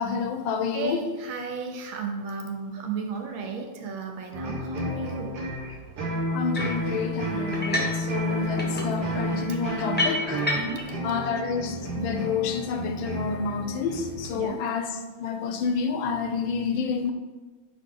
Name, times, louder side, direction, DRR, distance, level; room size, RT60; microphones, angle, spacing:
voice 1, 0.0-1.1 6.3-10.5 11.0-17.1, left 5 dB, 75° left, 6 dB, 1.4 m, -29 dB
voice 2, 0.7-5.4 10.5-10.9 14.3-14.6, right 4 dB, 70° right, 3 dB, 1.5 m, -34 dB
sound 1, 4.3-14.4, equal, 55° right, 1.7 m, -31 dB
sound 2, 6.5-6.9 7.5-8.0 8.3-10.9, left 1 dB, 10° left, 0.5 m, -30 dB
9.1 x 4.0 x 3.8 m, 1.2 s
omnidirectional pair, 2.4 m